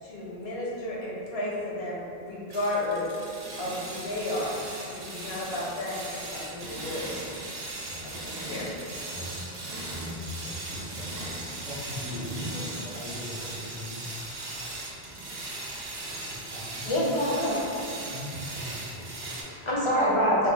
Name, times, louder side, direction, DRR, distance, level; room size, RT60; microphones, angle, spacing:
voice 1, 0.0-3.0 3.6-4.5 5.0-7.2 8.0-8.7, left 1 dB, 85° left, -6 dB, 1.1 m, -33 dB
sound 1, 2.5-19.4, right 2 dB, 75° right, 1.0 m, -38 dB
voice 2, 7.8-8.3 9.1-9.3 9.9-14.0 16.2-17.0 18.0-19.2, left 1 dB, 50° right, -8 dB, 0.9 m, -39 dB
voice 3, 16.9-17.6 19.3-20.5, equal, 35° left, -7 dB, 0.5 m, -25 dB
3.4 x 2.3 x 3.4 m, 2.5 s
omnidirectional pair, 1.0 m